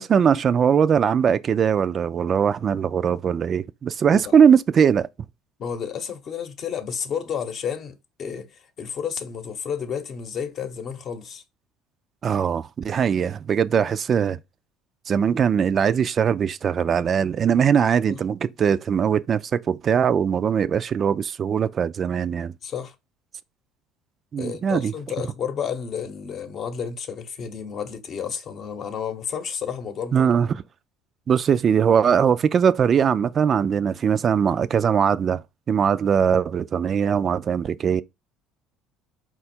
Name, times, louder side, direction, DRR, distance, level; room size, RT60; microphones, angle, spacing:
voice 1, 0.0-5.1 12.2-14.4 15.1-22.5 24.3-24.9 30.1-30.5 31.3-35.4 35.7-38.0, right 7 dB, 40° right, 0.3 m, -20 dB
voice 2, 5.6-11.4 18.1-18.2 22.6-22.9 24.4-30.3, left 7 dB, 50° left, 0.8 m, -31 dB
4.3 x 2.3 x 4.2 m
supercardioid pair, 85°, 0 cm